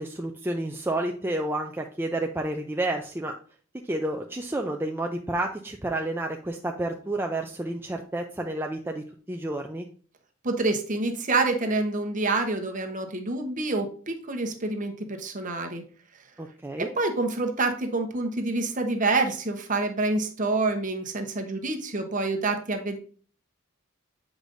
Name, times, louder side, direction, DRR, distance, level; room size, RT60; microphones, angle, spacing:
voice 1, 0.0-3.3 3.9-9.9 16.4-16.9, right 1 dB, 10° right, 2 dB, 0.4 m, -30 dB
voice 2, 10.4-15.8 16.8-23.0, right 3 dB, 40° right, 4 dB, 1.0 m, -27 dB
8.1 x 4.9 x 2.6 m, 0.43 s
head